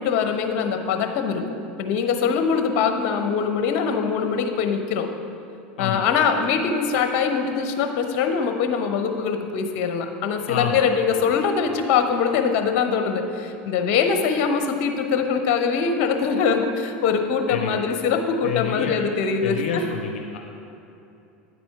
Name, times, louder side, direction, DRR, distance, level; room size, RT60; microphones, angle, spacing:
voice 1, 0.0-1.4 1.8-5.1 5.8-19.8, left 6 dB, 55° left, 6 dB, 0.8 m, -23 dB
voice 2, 10.5-10.8 17.5-17.8 18.4-19.0 19.4-20.4, left 7 dB, 80° left, 3 dB, 0.5 m, -28 dB
Piano, 10.6-13.2, right 4 dB, 35° right, 2.0 m, -42 dB
9.6 x 4.2 x 5.7 m, 2.8 s
hypercardioid pair, 95°, 6 cm